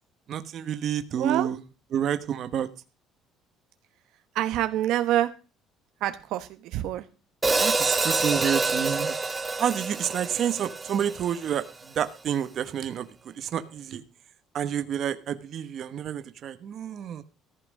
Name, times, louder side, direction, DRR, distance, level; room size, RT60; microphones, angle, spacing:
voice 1, 0.3-1.6 1.9-2.7 7.6-9.1 9.6-11.6 12.0-13.1 13.4-14.0 14.5-17.2, right 9 dB, 40° right, 10 dB, 1.1 m, -29 dB
voice 2, 1.2-1.5 4.3-5.3 6.0-7.0, right 13 dB, 65° right, 10 dB, 1.0 m, -26 dB
Hi-hat, 7.4-11.7, right 3 dB, 10° right, 1.0 m, -27 dB
14.5 x 5.9 x 8.4 m, 0.33 s
cardioid pair, 170°, 0 cm